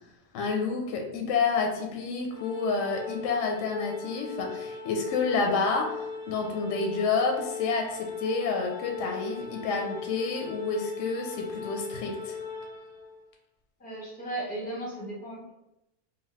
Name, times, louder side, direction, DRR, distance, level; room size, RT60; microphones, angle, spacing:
voice 1, 0.3-12.4, left 4 dB, 70° left, 2 dB, 0.8 m, -29 dB
Organ, 2.3-13.2, left 6 dB, 15° right, 0.9 m, -39 dB
voice 2, 13.8-15.5, right 1 dB, 10° left, -5 dB, 0.6 m, -36 dB
2.9 x 2.2 x 3.1 m, 0.86 s
omnidirectional pair, 1.6 m